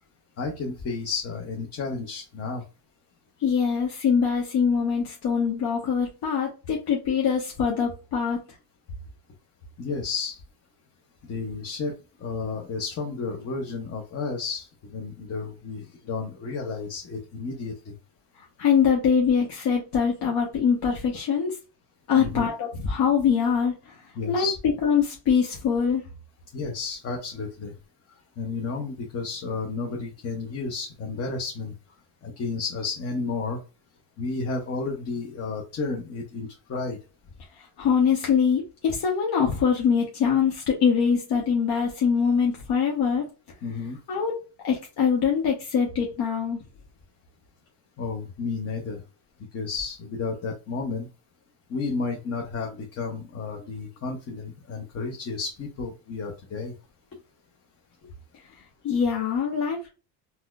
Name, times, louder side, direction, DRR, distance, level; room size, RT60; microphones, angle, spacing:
voice 1, 0.4-2.6 9.8-10.4 11.2-17.9 22.2-22.5 24.2-24.6 26.5-27.7 28.4-31.7 32.2-33.6 34.2-37.0 43.6-44.0 48.0-49.0 49.5-51.1 51.7-56.7, left 4 dB, 30° left, 1 dB, 0.7 m, -32 dB
voice 2, 3.4-8.4 18.6-21.5 22.1-23.9 24.3-24.5 24.8-26.0 37.8-43.2 44.1-44.3 44.6-46.6 58.8-59.9, left 6 dB, 55° left, -2 dB, 1.1 m, -23 dB
4.1 x 2.1 x 2.3 m, 0.31 s
cardioid pair, 125°, 46 cm